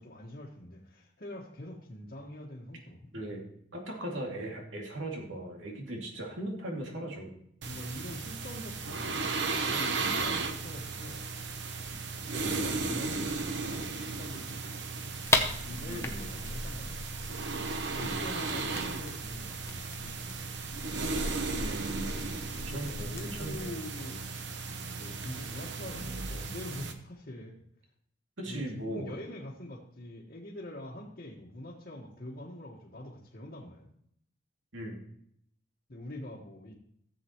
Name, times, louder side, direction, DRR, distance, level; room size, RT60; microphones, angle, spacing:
voice 1, 0.0-3.1 6.3-6.4 7.7-11.4 12.3-13.9 14.2-15.0 15.6-17.6 17.9-20.5 22.6-24.2 24.9-27.6 28.4-33.9 35.9-36.7, left 1 dB, 50° left, -6 dB, 1.5 m, -44 dB
voice 2, 3.7-7.3 12.4-12.9 15.9-16.3 18.0-18.2 21.5-23.7 28.4-29.1 34.7-35.0, right 1 dB, 80° right, 0 dB, 2.5 m, -39 dB
sound 1, 7.6-26.9, right 4 dB, 60° right, 0.9 m, -35 dB
sound 2, 15.2-23.7, left 2 dB, 15° left, 0.7 m, -36 dB
14.5 x 7.9 x 3.0 m, 0.70 s
head